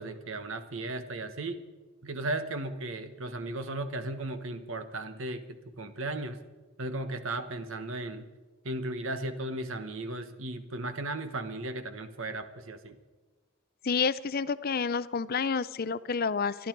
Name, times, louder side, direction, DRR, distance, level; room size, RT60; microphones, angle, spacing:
voice 1, 0.0-1.6 2.0-6.4 6.8-8.2 8.6-12.9, right 2 dB, 60° right, 9 dB, 1.3 m, -36 dB
voice 2, 13.8-16.7, left 5 dB, 40° left, 16 dB, 0.5 m, -29 dB
26.0 x 11.5 x 4.6 m, 1.3 s
head